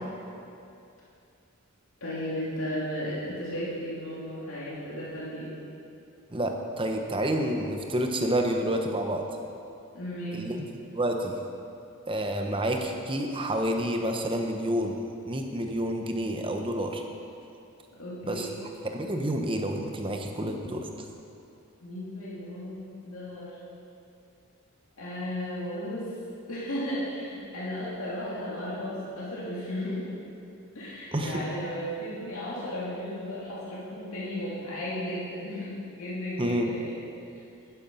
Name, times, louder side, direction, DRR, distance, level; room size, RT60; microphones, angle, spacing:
voice 1, 2.0-5.5 9.9-10.4 18.0-18.5 21.8-23.6 25.0-26.1 26.5-30.1 30.7-37.0, equal, 65° left, -8 dB, 3.0 m, -35 dB
voice 2, 6.3-9.2 10.3-10.6 10.9-11.4 12.1-15.0 15.2-17.0 18.2-18.5 18.9-21.1 31.1-31.4 36.4-36.7, right 1 dB, 25° right, 3 dB, 0.9 m, -29 dB
11.5 x 10.5 x 5.6 m, 2.6 s
head